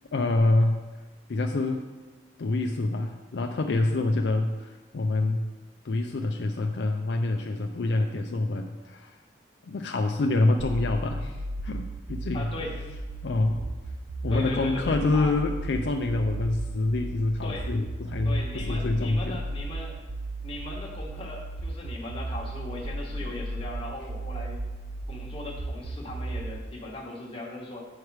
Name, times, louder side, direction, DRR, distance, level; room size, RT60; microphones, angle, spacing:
voice 1, 0.1-0.8 1.3-1.9 2.4-5.5 5.8-9.2 9.6-12.5 13.2-13.6 14.2-19.4, left 2 dB, 65° left, 4 dB, 0.4 m, -26 dB
sound 1, 11.1-26.6, right 2 dB, 70° right, 0.6 m, -35 dB
voice 2, 12.3-13.0 14.3-15.4 17.4-17.7 18.2-20.0 20.4-24.6 25.1-27.9, left 2 dB, 30° left, -2 dB, 1.3 m, -38 dB
8.3 x 4.7 x 4.7 m, 1.3 s
head